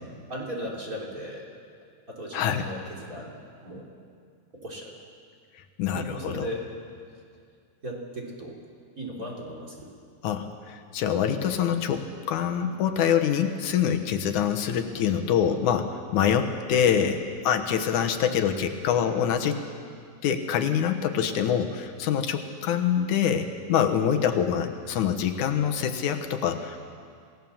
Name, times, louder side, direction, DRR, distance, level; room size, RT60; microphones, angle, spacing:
voice 1, 0.3-1.5 2.1-3.9 4.6-4.9 5.8-6.6 7.8-8.6 9.0-9.9, equal, 30° right, -2 dB, 3.6 m, -37 dB
voice 2, 2.3-2.7 5.8-6.5 10.2-19.6 20.2-26.8, left 8 dB, 85° left, 6 dB, 2.7 m, -25 dB
27.0 x 17.5 x 7.2 m, 2.2 s
omnidirectional pair, 3.4 m